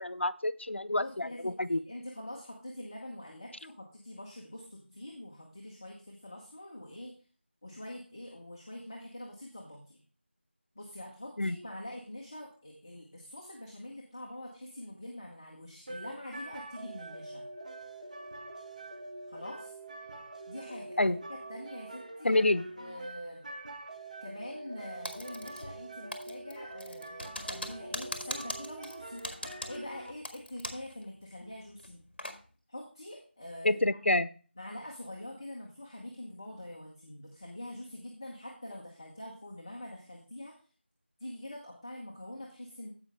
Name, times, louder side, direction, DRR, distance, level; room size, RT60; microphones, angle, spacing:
voice 1, 0.0-1.8 11.4-11.6 21.0-21.2 22.2-22.6 33.6-34.3, left 2 dB, 80° left, 15 dB, 0.7 m, -28 dB
voice 2, 0.9-7.1 7.6-10.0 10.7-17.4 19.3-19.8 20.5-22.4 22.8-23.4 24.2-29.2 29.7-32.0 32.7-33.8 34.6-40.5 41.2-42.9, left 1 dB, 20° left, -2 dB, 1.0 m, -45 dB
sound 1, 15.9-30.1, right 2 dB, 40° right, 1.2 m, -45 dB
Typing, 25.0-25.8 26.1-30.9 31.2-31.3 31.8-32.4, left 1 dB, 55° left, 1.8 m, -40 dB
15.5 x 5.4 x 3.4 m, 0.38 s
figure-of-eight pair, 175°, 6 cm